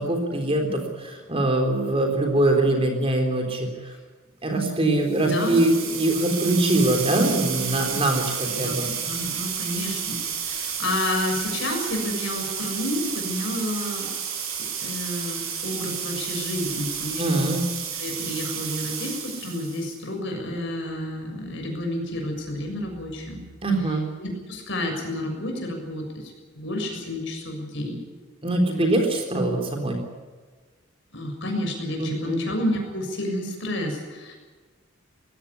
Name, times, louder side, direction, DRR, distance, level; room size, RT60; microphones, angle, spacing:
voice 1, 0.0-3.7 4.4-8.9 17.2-17.6 23.6-24.1 28.4-30.0 32.0-32.4, right 1 dB, 25° right, 3 dB, 3.8 m, -23 dB
sound 1, 5.0-20.0, right 7 dB, 85° right, 5.7 m, -31 dB
voice 2, 5.2-5.6 8.5-8.8 9.0-14.1 14.8-17.5 18.0-23.4 23.8-28.0 31.1-34.4, left 1 dB, 60° left, 2 dB, 6.8 m, -30 dB
20.5 x 16.5 x 9.8 m, 1.4 s
head